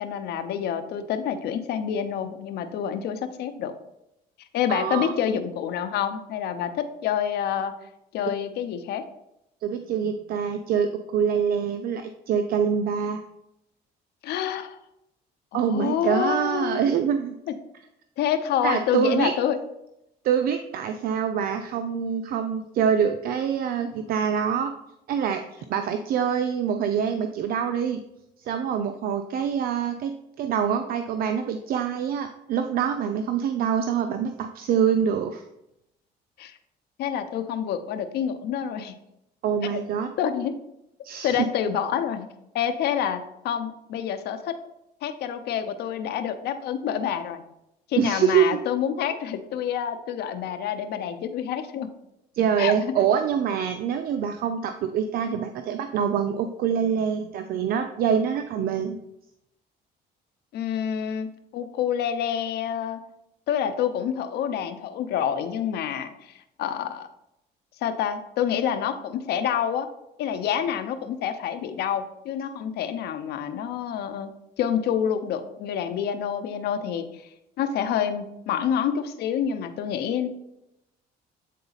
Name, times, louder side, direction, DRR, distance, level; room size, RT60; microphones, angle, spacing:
voice 1, 0.0-3.7 4.5-7.7 8.1-9.0 14.2-14.8 15.5-16.9 18.2-19.6 36.4-36.6 37.0-39.0 40.2-40.6 41.2-42.3 42.5-44.5 45.0-47.4 47.9-51.9 52.6-53.0 60.5-63.0 63.5-67.1 67.8-69.9 70.2-74.3 74.6-77.2 77.6-80.3, left 9 dB, 75° left, 9 dB, 0.7 m, -27 dB
voice 2, 4.7-5.1 9.6-13.2 15.5-17.4 18.6-19.3 20.2-24.7 25.1-28.0 28.4-35.4 39.4-40.1 41.0-41.5 48.0-48.6 52.3-59.0, right 8 dB, 60° right, 7 dB, 0.5 m, -25 dB
8.3 x 3.9 x 4.0 m, 0.84 s
cardioid pair, 110°, 17 cm